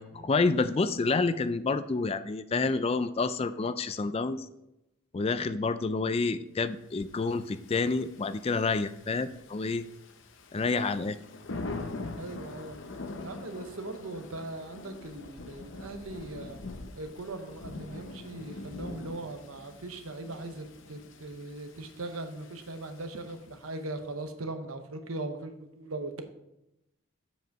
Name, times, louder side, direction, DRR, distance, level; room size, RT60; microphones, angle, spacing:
voice 1, 0.0-4.5 5.1-9.8 10.5-11.2, left 3 dB, 30° left, 13 dB, 0.3 m, -28 dB
Thunder / Rain, 7.1-23.7, left 2 dB, 60° left, 0.7 m, -44 dB
voice 2, 12.2-12.8 13.2-16.6 17.0-26.2, right 2 dB, 85° right, 7 dB, 0.9 m, -39 dB
7.8 x 5.2 x 4.6 m, 0.88 s
head